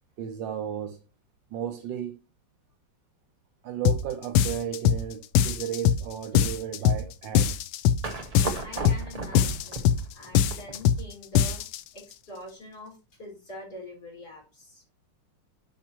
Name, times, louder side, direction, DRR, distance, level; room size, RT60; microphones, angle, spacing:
voice 1, 0.2-1.0 1.5-2.2 3.6-7.6, right 9 dB, 80° right, 1.4 m, -34 dB
sound 1, 3.8-4.0 4.3-5.0 5.3-6.0 6.3-7.0 7.3-8.0 8.3-9.0 9.3-10.0 10.3-11.0 11.3-11.8, left 9 dB, 90° left, 1.3 m, -22 dB
sound 2, 8.0-11.0, right 2 dB, 25° right, 0.9 m, -35 dB
voice 2, 8.6-11.6 11.9-14.8, left 1 dB, 55° left, 4.9 m, -45 dB
10.5 x 5.8 x 3.0 m
omnidirectional pair, 2.0 m